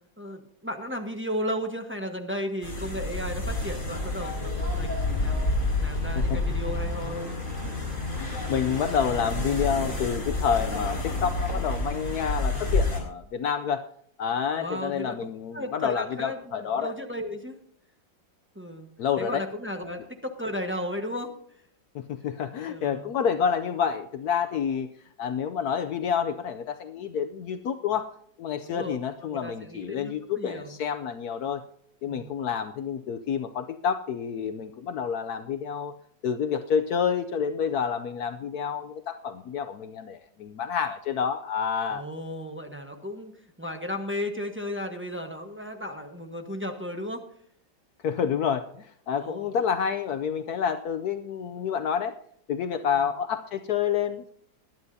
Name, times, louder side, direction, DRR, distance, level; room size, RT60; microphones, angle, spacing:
voice 1, 0.2-7.3 14.6-17.5 18.5-18.9 19.2-21.3 22.7-23.1 28.6-30.8 32.1-32.3 41.9-43.3 43.6-47.2 49.1-49.5, equal, 10° right, 3 dB, 1.0 m, -35 dB
sound 1, 2.6-13.0, left 2 dB, 40° left, 4.7 m, -29 dB
voice 2, 8.2-13.8 14.2-17.0 19.0-19.4 21.9-24.9 25.2-28.1 28.4-31.6 32.0-35.9 36.2-42.0 48.0-52.1 52.5-54.3, left 7 dB, 65° left, 8 dB, 1.0 m, -28 dB
20.5 x 10.5 x 2.7 m, 0.66 s
omnidirectional pair, 2.0 m